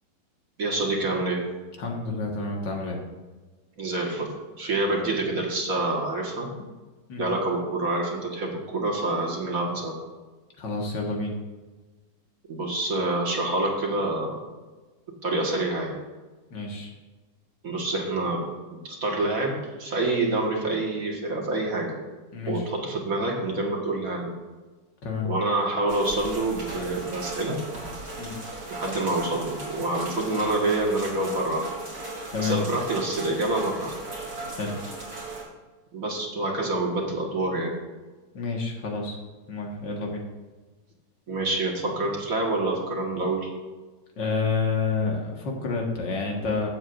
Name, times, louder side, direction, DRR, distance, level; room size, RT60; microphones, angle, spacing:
voice 1, 0.6-1.5 3.8-6.5 7.2-10.0 12.5-14.4 15.2-16.0 17.6-18.5 18.8-22.0 22.4-24.3 25.2-27.6 28.7-31.7 32.4-34.0 35.9-37.7 41.3-43.5, right 2 dB, 50° right, -1 dB, 2.1 m, -27 dB
voice 2, 1.8-3.0 7.1-7.2 10.6-11.4 16.5-16.9 22.3-22.7 25.0-25.3 28.2-28.4 32.3-32.6 34.5-34.7 38.3-39.2 39.5-40.2 44.2-46.7, left 4 dB, 80° left, 0 dB, 2.3 m, -29 dB
sound 1, 25.9-35.4, right 2 dB, 85° right, 3.8 m, -37 dB
15.5 x 7.8 x 2.6 m, 1.3 s
omnidirectional pair, 1.9 m